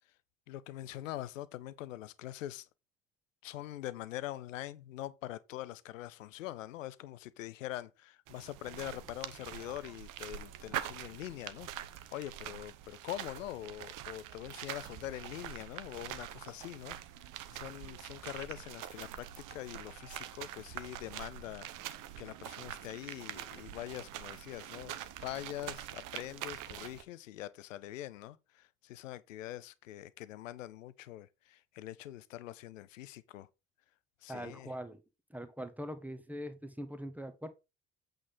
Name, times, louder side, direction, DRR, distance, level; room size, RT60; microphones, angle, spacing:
voice 1, 0.5-2.7 3.4-11.7 12.1-17.0 17.5-21.7 22.2-33.5 34.2-34.7, left 14 dB, 75° left, 0.6 m, -44 dB
sound 1, 8.3-27.0, right 12 dB, 50° right, 0.9 m, -45 dB
voice 2, 34.3-35.0 35.3-37.5, equal, 5° right, 1.3 m, -42 dB
8.4 x 3.8 x 5.4 m
figure-of-eight pair, 55°, 40 cm